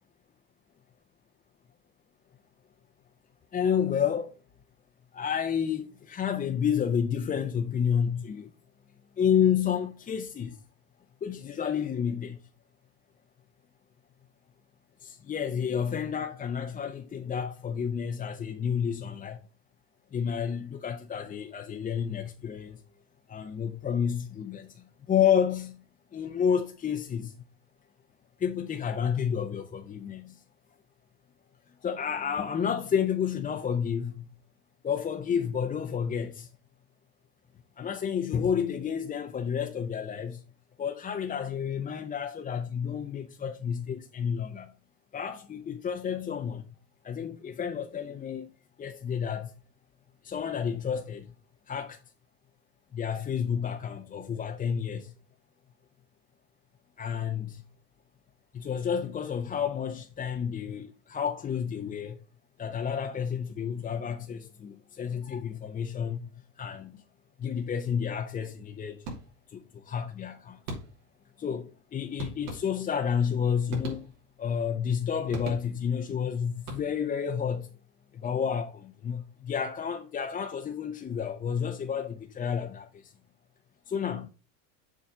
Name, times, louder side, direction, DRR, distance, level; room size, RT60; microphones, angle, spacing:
voice 1, 3.5-4.3 5.1-8.5 9.2-10.6 11.2-12.4 15.0-19.4 20.1-22.8 23.3-24.7 25.1-25.8 26.1-27.3 28.4-30.3 31.8-34.2 34.8-36.5 37.8-40.4 40.8-44.7 45.1-46.6 47.0-48.5 48.8-49.5 50.2-51.2 51.7-52.0 52.9-55.1 57.0-57.6 58.5-62.2 62.6-66.2 66.6-67.0 67.4-69.0 69.5-70.6 71.4-74.1 74.4-77.7 78.2-82.9 83.9-84.3, left 7 dB, 20° left, 0.6 m, -30 dB
sound 1, 69.0-69.6 70.7-71.2 72.2-73.1 73.7-74.5 75.3-76.0 76.6-77.2, right 2 dB, 85° right, 3.1 m, -40 dB
7.3 x 3.9 x 5.9 m
supercardioid pair, 120°, 46 cm